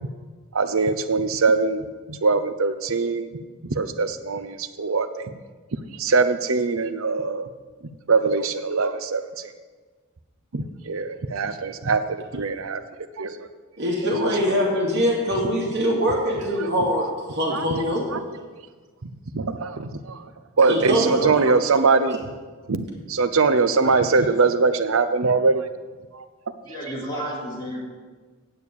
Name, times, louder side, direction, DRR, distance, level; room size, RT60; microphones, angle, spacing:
voice 1, 0.5-3.3 3.6-5.3 6.0-7.5 8.1-9.5 10.5-12.8 13.2-13.5 14.2-14.3 14.6-14.7 16.6-17.0 17.5-17.8 18.1-18.2 19.0-20.2 20.6-22.3 22.7-25.6 26.1-26.2, right 4 dB, 70° right, 10 dB, 0.7 m, -22 dB
voice 2, 13.8-18.0 20.7-21.4, equal, 55° right, -2 dB, 2.7 m, -23 dB
voice 3, 26.6-27.8, equal, 20° left, -6 dB, 3.4 m, -32 dB
9.1 x 6.7 x 8.4 m, 1.4 s
head